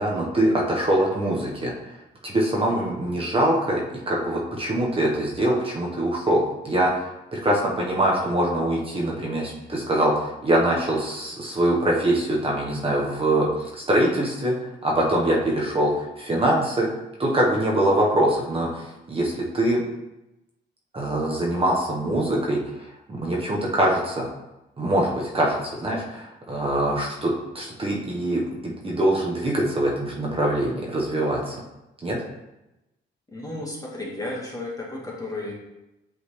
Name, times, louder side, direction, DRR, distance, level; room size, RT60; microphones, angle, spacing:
voice 1, 0.0-1.7 2.2-7.1 7.3-16.9 17.2-19.8 20.9-24.3 24.8-31.6 32.0-32.2, right 1 dB, 30° right, -3 dB, 1.3 m, -23 dB
voice 2, 33.3-35.5, left 2 dB, 20° left, -3 dB, 1.8 m, -33 dB
8.4 x 3.8 x 3.3 m, 0.94 s
cardioid pair, 90°, 20 cm